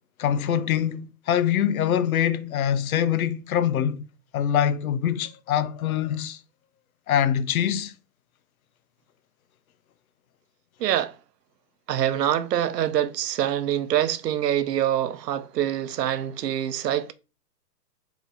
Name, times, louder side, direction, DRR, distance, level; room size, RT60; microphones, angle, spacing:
voice 1, 0.2-4.0 4.3-6.4 7.1-7.9, left 9 dB, 60° left, 0.7 m, -24 dB
voice 2, 10.8-11.1 11.9-17.1, right 11 dB, 80° right, 0.7 m, -25 dB
4.0 x 2.9 x 4.0 m
hypercardioid pair, 155°, 48 cm